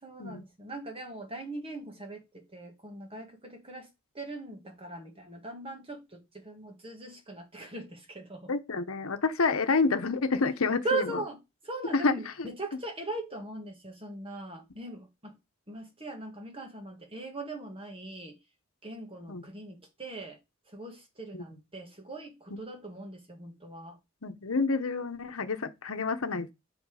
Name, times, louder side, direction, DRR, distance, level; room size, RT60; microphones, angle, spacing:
voice 1, 0.0-3.9 4.1-8.5 10.8-11.4 11.6-15.4 15.7-18.4 18.8-20.4 20.7-24.0, right 2 dB, 25° right, 1.6 m, -40 dB
voice 2, 8.5-11.0 11.9-12.1 12.4-12.5 19.3-19.4 21.3-21.4 22.5-22.6 24.2-26.5, left 4 dB, 80° left, 0.9 m, -28 dB
5.6 x 5.3 x 4.9 m
head